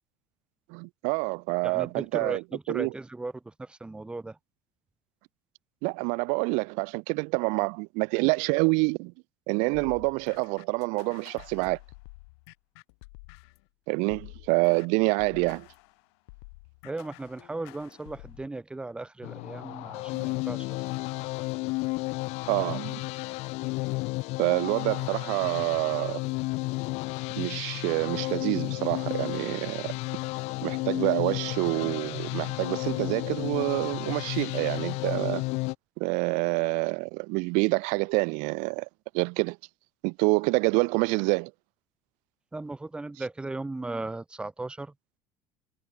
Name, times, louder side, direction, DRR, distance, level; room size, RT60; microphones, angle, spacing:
voice 1, 0.7-2.9 5.8-9.1 9.5-11.8 13.9-15.7 22.5-23.0 24.4-26.2 27.4-29.9 30.6-35.4 36.0-38.9 39.1-39.6 40.0-41.5, right 33 dB, 65° right, 1.2 m, -27 dB
voice 2, 1.6-3.3 3.6-4.3 16.8-20.6 42.5-44.9, right 2 dB, 5° right, 1.5 m, -36 dB
sound 1, 9.7-13.7 14.1-18.5, left 28 dB, 85° left, 6.9 m, -49 dB
sound 2, 19.2-35.7, left 23 dB, 55° left, 0.7 m, -32 dB
cardioid pair, 170°, 13 cm